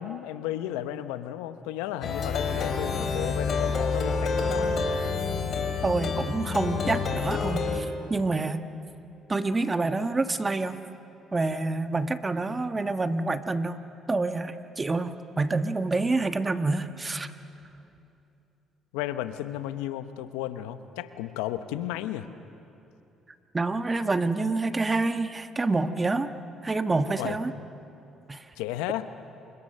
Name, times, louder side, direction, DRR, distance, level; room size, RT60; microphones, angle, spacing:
voice 1, 0.0-4.8 18.9-22.3 27.2-27.4 28.6-29.1, left 13 dB, 90° left, 11 dB, 0.9 m, -33 dB
Plucked string instrument, 2.0-7.8, left 4 dB, 55° left, 3.1 m, -28 dB
voice 2, 5.8-8.7 9.3-10.8 11.3-13.8 14.1-17.3 23.5-26.3 26.6-27.5 28.3-28.5, right 3 dB, 25° right, 9 dB, 1.3 m, -27 dB
28.5 x 25.0 x 6.6 m, 2.8 s
supercardioid pair, 65°, 0 cm